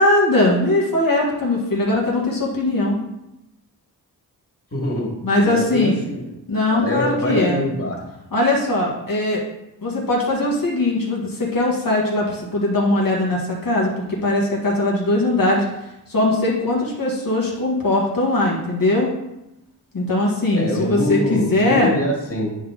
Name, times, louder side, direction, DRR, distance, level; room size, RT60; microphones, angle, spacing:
voice 1, 0.0-3.0 5.2-6.0 6.5-7.7 8.3-9.4 9.8-15.7 16.1-19.1 19.9-21.9, left 2 dB, 55° left, -4 dB, 1.7 m, -20 dB
voice 2, 4.7-5.1 5.4-6.2 6.7-8.0 20.5-22.5, left 1 dB, 35° left, -3 dB, 2.5 m, -24 dB
9.2 x 4.0 x 3.9 m, 0.90 s
wide cardioid pair, 70°, 41 cm